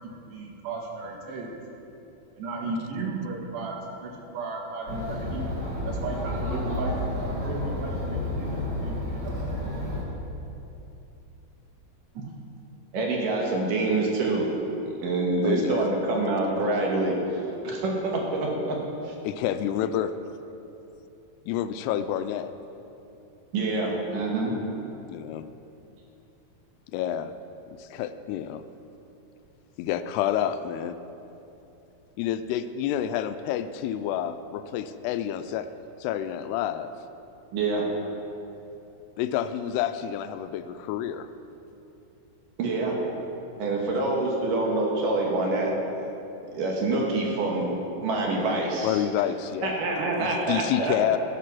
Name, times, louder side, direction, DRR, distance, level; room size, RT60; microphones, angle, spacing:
voice 1, 0.0-1.6 2.4-5.5 5.8-7.2 7.5-9.5 12.1-12.2, right 3 dB, 85° right, 0 dB, 3.5 m, -35 dB
Chatter, 4.9-10.0, left 1 dB, 40° right, 1.5 m, -30 dB
voice 2, 12.9-14.5 14.8-18.8 19.0-19.1 23.5-24.6 37.5-37.9 42.6-43.0 43.6-45.8 46.5-47.7 48.0-49.0 49.6-51.2, right 2 dB, 65° right, -1 dB, 2.7 m, -26 dB
voice 3, 15.4-15.8 19.2-20.1 21.5-22.5 25.1-25.5 26.9-27.3 27.8-28.6 29.8-31.0 32.2-35.7 36.0-36.9 39.2-41.3 43.9-44.1 48.8-49.8 50.2-51.2, left 10 dB, 85° left, 10 dB, 2.6 m, -28 dB
14.5 x 7.6 x 6.0 m, 2.9 s
omnidirectional pair, 4.7 m